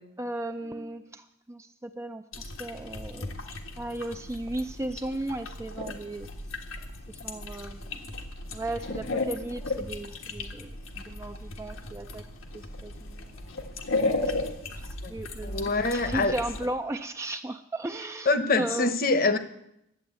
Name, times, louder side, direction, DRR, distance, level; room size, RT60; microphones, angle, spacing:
voice 1, 0.2-6.3 7.1-8.2 8.5-12.3 12.5-13.2 13.5-13.6 14.3-14.4 14.7-18.9, right 1 dB, 15° right, 7 dB, 0.4 m, -36 dB
sound 1, 2.3-16.7, left 2 dB, 90° left, 1.6 m, -35 dB
voice 2, 15.4-16.3 18.3-19.4, left 3 dB, 45° left, 10 dB, 1.0 m, -24 dB
11.5 x 8.6 x 8.2 m, 0.80 s
head